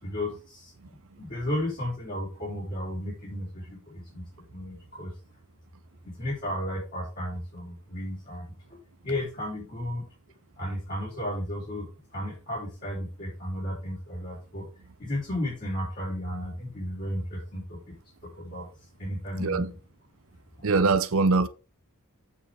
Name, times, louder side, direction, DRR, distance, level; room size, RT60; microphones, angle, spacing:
voice 1, 0.0-4.2 4.5-5.1 6.2-8.8 9.0-10.0 10.6-11.9 12.1-14.6 15.0-17.9 18.4-18.7 19.0-19.8 20.6-20.7, left 1 dB, 45° left, 4.1 m, -34 dB
voice 2, 19.4-19.7 20.6-21.5, right 3 dB, 65° right, 0.7 m, -22 dB
8.4 x 7.1 x 3.5 m
head